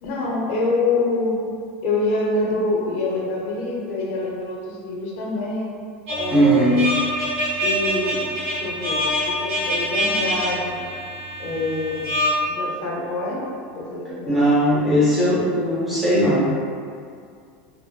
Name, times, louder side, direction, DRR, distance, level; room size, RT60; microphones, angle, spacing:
voice 1, 0.0-1.4 1.8-5.7 6.1-6.8 7.6-8.2 8.5-10.8 11.4-12.1 12.5-13.4 13.7-14.5, left 2 dB, 45° left, -4 dB, 0.5 m, -26 dB
sound 1, 6.1-12.3, equal, 75° right, 0.8 m, -25 dB
voice 2, 6.3-6.8 14.3-16.5, right 1 dB, ahead, -10 dB, 0.5 m, -18 dB
2.4 x 2.3 x 2.2 m, 2.3 s
supercardioid pair, 175°, 6 cm